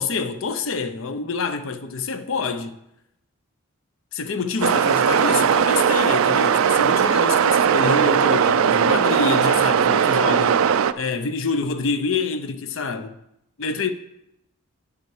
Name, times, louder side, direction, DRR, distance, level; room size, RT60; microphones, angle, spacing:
voice 1, 0.0-2.7 4.1-10.6 11.0-13.2 13.6-13.9, left 4 dB, 65° left, 0.6 m, -26 dB
sound 1, 4.6-10.9, right 7 dB, 75° right, 0.4 m, -18 dB
9.7 x 7.1 x 4.8 m
head